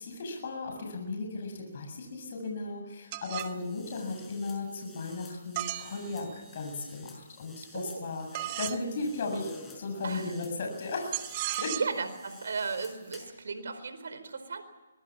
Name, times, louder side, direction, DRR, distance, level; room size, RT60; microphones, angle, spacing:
voice 1, 0.0-9.5 9.8-11.3 11.6-11.7, left 3 dB, 50° left, 2 dB, 7.4 m, -36 dB
sound 1, 3.1-3.6 5.6-6.5 8.3-8.8 11.1-12.1, right 15 dB, 35° right, 1.2 m, -35 dB
sound 2, 3.4-13.4, left 4 dB, 10° left, 6.1 m, -53 dB
voice 2, 7.7-8.1 8.4-8.5 10.0-10.4 11.6-14.6, right 4 dB, 70° right, 10 dB, 4.4 m, -36 dB
25.0 x 21.5 x 7.4 m, 1.1 s
hypercardioid pair, 145°, 0 cm